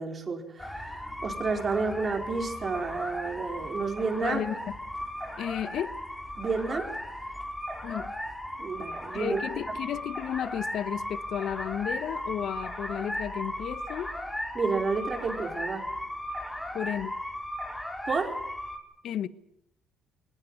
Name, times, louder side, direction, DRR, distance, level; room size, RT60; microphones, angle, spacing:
voice 1, 0.0-4.4 6.4-6.9 8.6-9.4 14.5-15.9 18.1-18.4, right 4 dB, 40° right, 4.7 m, -30 dB
sound 1, 0.6-18.8, left 1 dB, 10° left, 4.6 m, -36 dB
voice 2, 4.2-4.7 5.4-6.0 7.8-8.1 9.1-14.1 16.7-17.2 19.0-19.3, left 10 dB, 65° left, 1.1 m, -33 dB
21.5 x 19.0 x 9.2 m
supercardioid pair, 70°, 0 cm